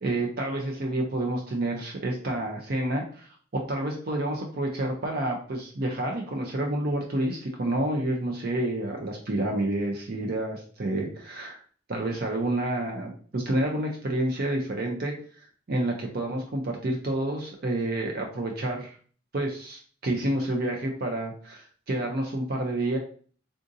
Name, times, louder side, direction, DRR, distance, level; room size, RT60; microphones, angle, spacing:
voice 1, 0.0-11.6 11.9-19.0 19.3-23.0, right 1 dB, 50° right, 1 dB, 0.5 m, -29 dB
3.7 x 2.6 x 2.6 m, 0.44 s
head